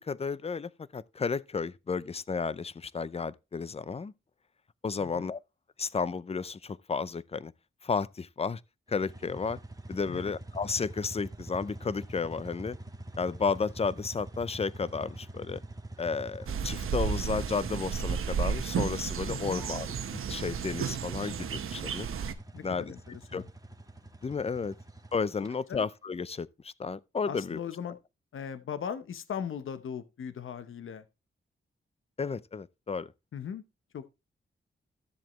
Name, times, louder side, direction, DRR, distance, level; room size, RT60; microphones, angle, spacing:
voice 1, 0.0-4.1 4.8-5.4 5.8-7.5 7.8-8.6 8.9-9.6 9.9-12.8 13.2-15.6 16.0-22.1 22.6-22.9 23.3-23.4 24.2-24.7 25.1-27.6 32.2-33.1, left 5 dB, 30° left, 0.5 m, -33 dB
voice 2, 5.0-5.3 10.1-10.3 19.3-19.6 22.5-23.5 25.7-25.8 27.3-28.0 28.3-31.0 33.3-33.6 33.9-34.1, left 7 dB, 75° left, 0.9 m, -39 dB
sound 1, 8.9-25.6, right 1 dB, 15° right, 1.7 m, -45 dB
sound 2, 16.5-22.3, right 7 dB, 85° right, 1.0 m, -33 dB
12.5 x 7.5 x 3.1 m
cardioid pair, 85°, 21 cm